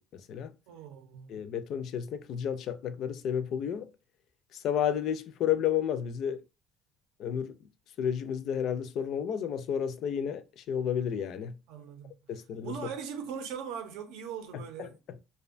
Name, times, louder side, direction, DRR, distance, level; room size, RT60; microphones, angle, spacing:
voice 1, 0.0-0.5 1.3-3.9 4.5-6.4 7.2-7.6 8.0-11.5 12.3-12.8 14.5-15.2, left 8 dB, 55° left, 0.3 m, -32 dB
voice 2, 0.7-1.4 11.7-12.1 12.6-14.9, right 7 dB, 90° right, 0.6 m, -40 dB
2.6 x 2.2 x 2.4 m
cardioid pair, 145°, 0 cm